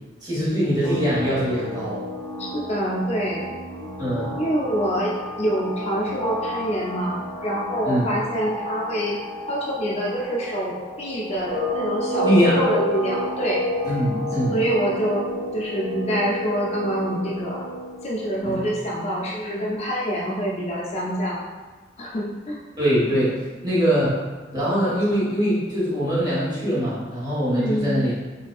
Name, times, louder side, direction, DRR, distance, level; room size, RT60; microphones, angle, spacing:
voice 1, 0.2-2.0 4.0-4.4 7.8-8.0 12.2-12.6 13.8-14.6 18.4-18.6 22.8-24.2 24.5-28.1, equal, 25° right, -9 dB, 1.4 m, -22 dB
sound 1, 0.8-18.4, left 1 dB, 15° left, 1.4 m, -31 dB
voice 2, 2.4-3.5 4.4-5.1 5.4-9.2 9.5-13.6 14.5-15.2 15.5-17.6 18.0-21.4 22.0-22.6 27.6-28.0, equal, 35° left, -4 dB, 0.5 m, -26 dB
4.8 x 2.6 x 2.3 m, 1.3 s
head